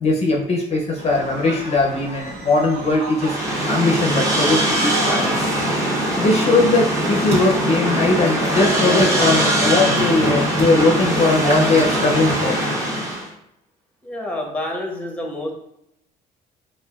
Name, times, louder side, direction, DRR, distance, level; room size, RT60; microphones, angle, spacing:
voice 1, 0.0-3.3 3.6-5.5 6.2-12.6, left 3 dB, 40° left, -1 dB, 0.6 m, -19 dB
sound 1, 1.0-12.5, right 1 dB, 35° right, 1.4 m, -33 dB
sound 2, 3.2-13.3, right 1 dB, 20° right, 1.0 m, -21 dB
voice 2, 14.0-15.5, left 1 dB, 10° left, 1 dB, 0.8 m, -28 dB
5.3 x 2.4 x 2.3 m, 0.79 s
cardioid pair, 110°, 17 cm